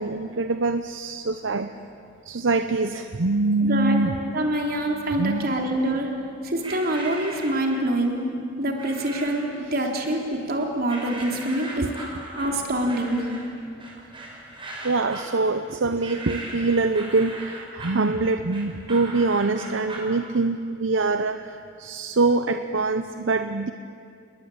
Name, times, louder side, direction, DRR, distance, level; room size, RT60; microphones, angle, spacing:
voice 1, 0.0-1.7 2.3-4.1 5.2-5.5 11.8-11.9 14.8-23.7, right 3 dB, 75° right, 9 dB, 0.8 m, -24 dB
voice 2, 3.6-4.1 4.3-6.1 6.4-8.3 8.6-11.9 12.4-13.2, right 1 dB, 55° right, 1 dB, 3.7 m, -25 dB
sound 1, 6.6-8.0 8.8-9.5 9.9-10.5 10.9-20.2, right 2 dB, 25° right, 5.4 m, -39 dB
28.5 x 21.0 x 8.7 m, 2.4 s
head